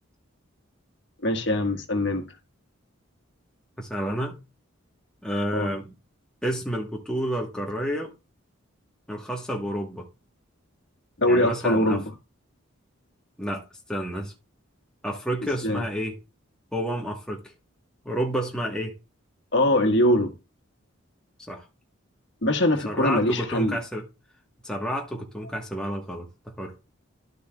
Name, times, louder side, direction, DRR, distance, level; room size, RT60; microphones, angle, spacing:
voice 1, 1.2-2.2 5.5-5.7 11.2-12.0 15.6-15.8 19.5-20.3 22.4-23.8, left 1 dB, 55° left, 1.6 m, -22 dB
voice 2, 3.8-4.4 5.2-5.9 6.4-8.1 9.1-10.1 11.3-12.0 13.4-14.3 15.0-16.2 16.7-17.5 18.0-18.9 21.5-21.6 22.8-24.0 24.6-26.7, equal, 5° left, 1.2 m, -30 dB
12.0 x 6.8 x 2.3 m
head